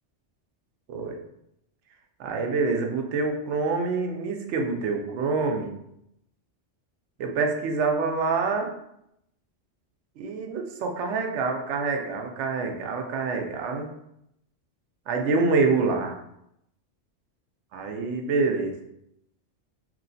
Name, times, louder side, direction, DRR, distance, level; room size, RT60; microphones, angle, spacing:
voice 1, 0.9-1.2 2.2-5.7 7.2-8.7 10.2-13.9 15.1-16.2 17.7-18.8, right 4 dB, 80° right, 3 dB, 0.9 m, -26 dB
3.0 x 2.9 x 2.6 m, 0.79 s
omnidirectional pair, 1.2 m